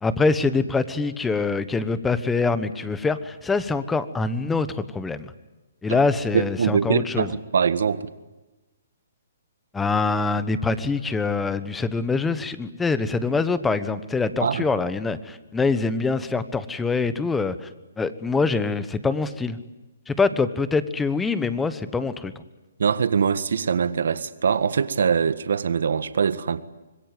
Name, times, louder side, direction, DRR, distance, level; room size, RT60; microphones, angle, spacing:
voice 1, 0.0-5.3 5.8-7.3 9.7-17.7 18.0-19.6 20.1-22.3, left 4 dB, 10° left, 1.2 m, -24 dB
voice 2, 6.3-8.1 14.4-14.6 22.8-26.6, right 6 dB, 70° right, 1.6 m, -23 dB
26.0 x 21.5 x 9.3 m
hypercardioid pair, 150°, 0 cm